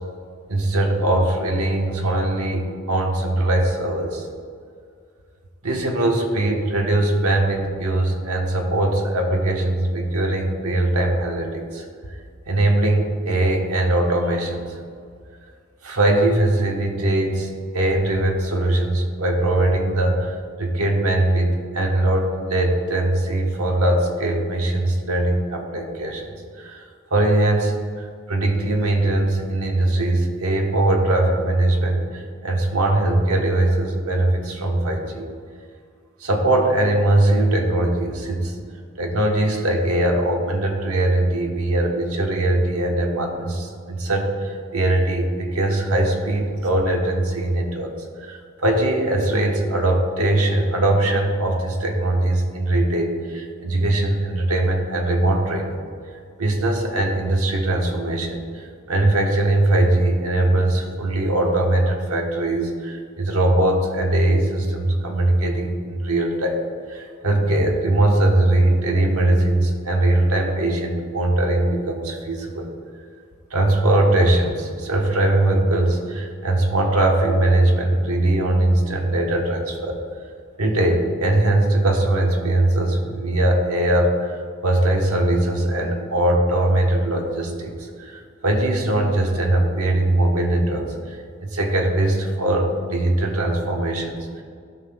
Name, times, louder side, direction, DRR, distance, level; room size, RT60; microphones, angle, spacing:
voice 1, 0.5-4.3 5.6-14.8 15.8-35.3 36.2-38.5 39.0-47.9 48.2-55.8 56.4-66.6 66.9-72.7 73.5-80.0 80.6-94.4, right 1 dB, 85° right, 1 dB, 1.3 m, -21 dB
14.0 x 5.8 x 2.3 m, 2.2 s
head